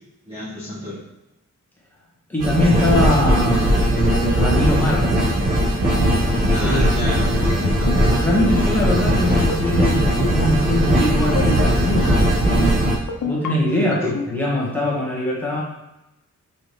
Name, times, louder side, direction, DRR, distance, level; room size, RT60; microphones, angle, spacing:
voice 1, 0.3-1.0 6.5-7.9 14.0-14.1, left 1 dB, 15° right, -12 dB, 1.8 m, -31 dB
voice 2, 2.3-5.2 6.5-7.0 8.2-12.9 13.3-15.6, left 1 dB, 5° left, -6 dB, 1.7 m, -22 dB
sound 1, 2.4-12.9, right 1 dB, 80° right, 1.9 m, -19 dB
sound 2, 7.5-8.0 8.3-8.6 9.4-9.9 10.2-10.5 11.2-11.6 12.0-12.4 13.1-13.5 13.9-14.2, left 6 dB, 70° left, 0.9 m, -26 dB
6.1 x 5.0 x 3.4 m, 0.93 s
wide cardioid pair, 140°, 31 cm